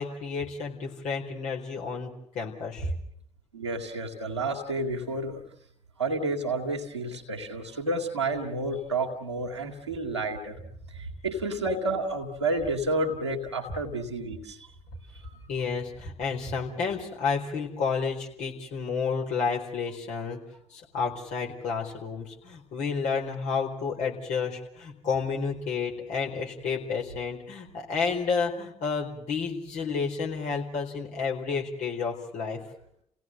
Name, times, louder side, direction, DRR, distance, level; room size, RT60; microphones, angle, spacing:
voice 1, 0.0-2.9 15.5-20.4 20.7-32.6, left 5 dB, 60° left, 0 dB, 4.4 m, -31 dB
voice 2, 3.5-5.4 6.0-10.6 10.9-14.7 15.2-15.5, right 2 dB, 85° right, 0 dB, 2.0 m, -30 dB
30.0 x 17.0 x 7.7 m, 0.73 s
figure-of-eight pair, 45°, 14 cm